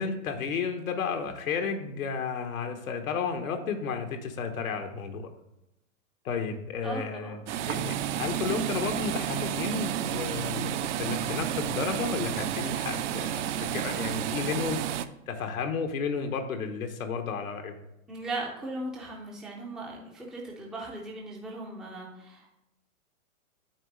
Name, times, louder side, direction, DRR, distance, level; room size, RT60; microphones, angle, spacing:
voice 1, 0.0-5.3 6.2-15.0 15.3-17.7, left 5 dB, 90° left, 5 dB, 1.1 m, -32 dB
voice 2, 6.8-7.4 18.1-22.5, right 2 dB, ahead, -2 dB, 0.4 m, -38 dB
sound 1, 7.5-15.0, right 11 dB, 65° right, 0.6 m, -31 dB
8.7 x 3.1 x 6.4 m, 0.86 s
hypercardioid pair, 140°, 40 cm